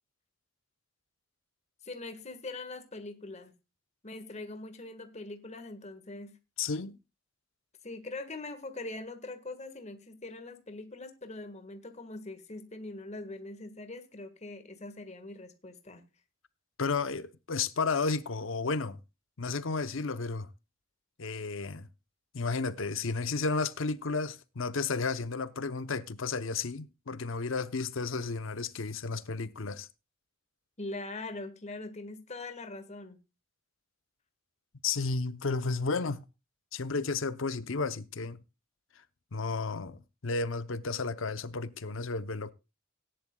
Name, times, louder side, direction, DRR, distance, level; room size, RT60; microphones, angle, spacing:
voice 1, 1.8-3.5 4.0-6.4 7.8-16.0 30.8-33.2, left 2 dB, 35° left, 1.6 m, -42 dB
voice 2, 6.6-7.0 16.8-19.0 19.4-20.5 21.2-21.9 22.3-29.9 34.8-36.2 36.7-38.4 39.3-42.5, left 4 dB, 70° left, 0.8 m, -32 dB
17.5 x 10.5 x 2.3 m
head